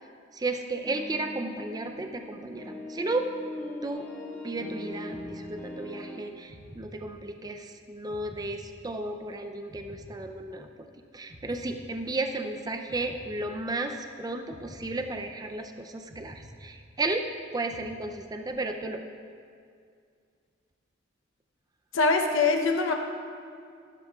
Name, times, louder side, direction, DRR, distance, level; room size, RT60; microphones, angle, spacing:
voice 1, 0.3-3.3 3.8-4.1 4.4-10.9 11.1-17.3 17.5-19.0, right 2 dB, 20° right, 5 dB, 0.4 m, -34 dB
sound 1, 0.8-6.2, left 1 dB, 10° left, 1.7 m, -40 dB
sound 2, 5.1-6.0 6.5-7.6 8.1-9.3 9.7-10.9 11.3-12.5 12.9-14.0 14.5-15.7 16.1-17.3 17.7-18.6, equal, 40° right, 1.2 m, -50 dB
voice 2, 21.9-22.9, left 3 dB, 85° left, 3 dB, 0.8 m, -23 dB
14.5 x 12.5 x 2.3 m, 2.3 s
head